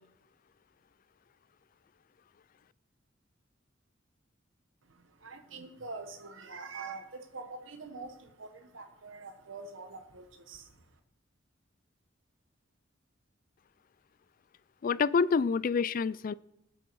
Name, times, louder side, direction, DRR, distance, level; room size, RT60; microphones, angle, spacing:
voice 1, 4.8-11.0, right 3 dB, 85° right, 7 dB, 1.3 m, -45 dB
voice 2, 14.8-16.3, left 5 dB, 45° left, 19 dB, 0.3 m, -27 dB
19.0 x 7.9 x 4.7 m, 0.90 s
head